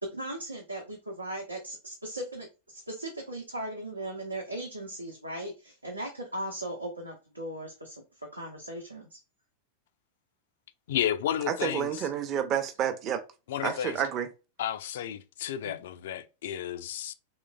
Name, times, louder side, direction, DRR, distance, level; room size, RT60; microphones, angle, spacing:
voice 1, 0.0-9.2 15.6-15.8, right 1 dB, 85° right, 0.8 m, -38 dB
voice 2, 10.9-12.1 13.5-14.0 14.6-17.1, left 10 dB, 55° left, 0.4 m, -32 dB
voice 3, 11.5-13.2 13.6-14.3, right 9 dB, 35° right, 0.6 m, -29 dB
3.8 x 3.1 x 2.4 m
figure-of-eight pair, 90°, 0 cm